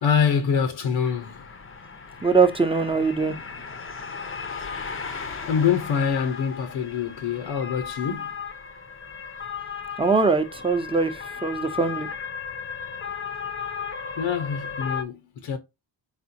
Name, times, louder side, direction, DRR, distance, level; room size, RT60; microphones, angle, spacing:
voice 1, 0.0-1.4 5.5-8.3 14.2-15.6, left 7 dB, 80° left, 0.9 m, -25 dB
sound 1, 1.0-15.0, left 6 dB, 25° left, 0.7 m, -36 dB
voice 2, 2.2-3.4 10.0-12.1, right 4 dB, 10° right, 0.7 m, -22 dB
4.2 x 3.6 x 2.7 m
cardioid pair, 85°, 46 cm